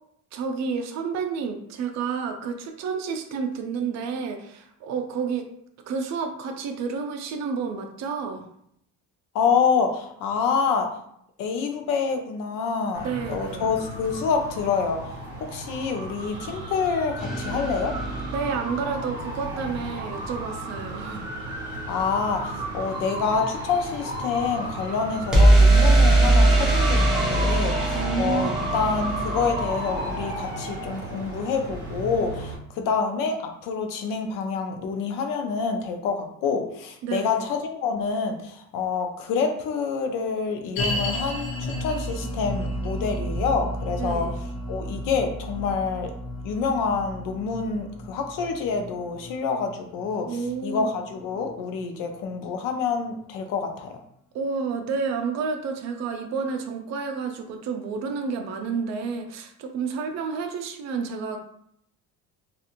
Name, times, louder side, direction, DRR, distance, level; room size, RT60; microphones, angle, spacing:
voice 1, 0.3-5.5 5.9-8.5 13.0-13.6 18.3-21.6 27.9-28.6 37.0-37.5 44.0-44.4 50.3-50.9 54.3-61.4, right 5 dB, 55° right, 5 dB, 0.4 m, -30 dB
voice 2, 9.3-10.9 11.4-15.1 15.4-18.0 21.9-44.3 44.7-46.1 46.4-53.9, left 5 dB, 65° left, 5 dB, 0.6 m, -27 dB
sound 1, 12.9-32.6, right 1 dB, 30° right, 1.1 m, -34 dB
sound 2, 17.2-19.2 25.3-31.1, right 2 dB, ahead, 0.5 m, -21 dB
sound 3, 40.8-52.0 52.3-52.4 53.0-53.1, equal, 90° left, 0.9 m, -33 dB
2.5 x 2.4 x 2.8 m, 0.71 s
cardioid pair, 165°, 34 cm